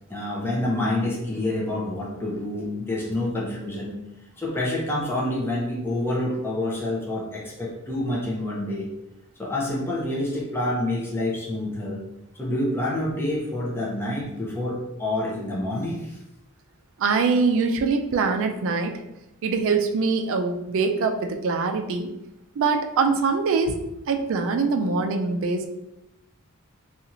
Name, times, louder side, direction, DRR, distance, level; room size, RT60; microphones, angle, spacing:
voice 1, 0.1-4.0 4.4-8.9 9.4-12.0 12.4-16.2, left 1 dB, 10° left, -4 dB, 0.5 m, -27 dB
voice 2, 17.0-19.0 19.4-22.1 22.6-23.7 24.1-25.7, right 4 dB, 65° right, 5 dB, 0.4 m, -23 dB
2.7 x 2.4 x 2.9 m, 0.90 s
head